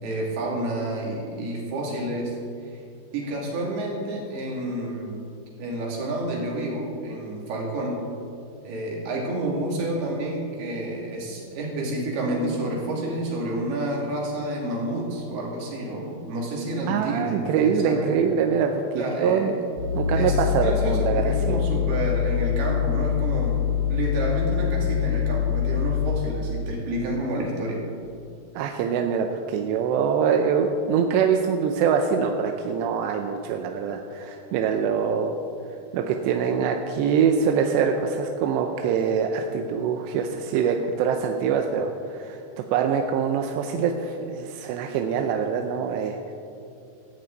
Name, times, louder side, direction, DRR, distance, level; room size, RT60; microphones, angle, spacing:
voice 1, 0.0-2.4 2.6-2.8 3.1-5.2 5.6-8.0 8.6-18.1 18.9-19.6 20.1-27.8, right 1 dB, 60° right, -3 dB, 4.4 m, -29 dB
voice 2, 16.9-19.6 19.9-21.6 28.6-35.4 35.9-46.3, right 6 dB, 80° right, 4 dB, 2.7 m, -24 dB
sound 1, 19.8-26.2, left 9 dB, 50° left, 3.4 m, -24 dB
16.5 x 14.5 x 4.1 m, 2.5 s
omnidirectional pair, 5.5 m